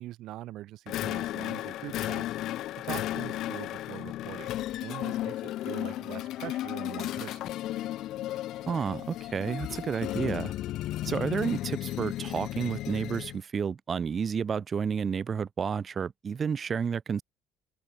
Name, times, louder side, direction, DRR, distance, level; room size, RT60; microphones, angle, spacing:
voice 1, 0.0-7.5, right 15 dB, 75° right, 3.5 m, -43 dB
sound 1, 0.9-13.4, left 14 dB, 70° left, 1.0 m, -34 dB
voice 2, 8.7-10.5 11.1-17.2, right 6 dB, 40° right, 0.7 m, -31 dB
cardioid pair, 95°, 0 cm